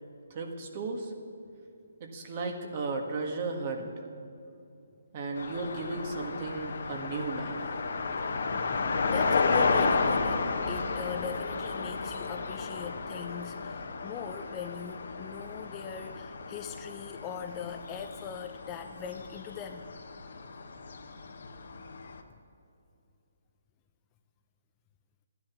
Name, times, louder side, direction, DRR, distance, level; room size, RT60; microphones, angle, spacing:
voice 1, 0.3-1.1 2.0-3.9 5.1-7.6, right 3 dB, 40° right, 3 dB, 1.7 m, -35 dB
sound 1, 5.4-22.2, left 4 dB, 65° left, 1.1 m, -33 dB
voice 2, 9.1-19.9, left 7 dB, 20° left, 6 dB, 0.6 m, -40 dB
14.0 x 10.5 x 6.2 m, 2.7 s
hypercardioid pair, 155°, 0 cm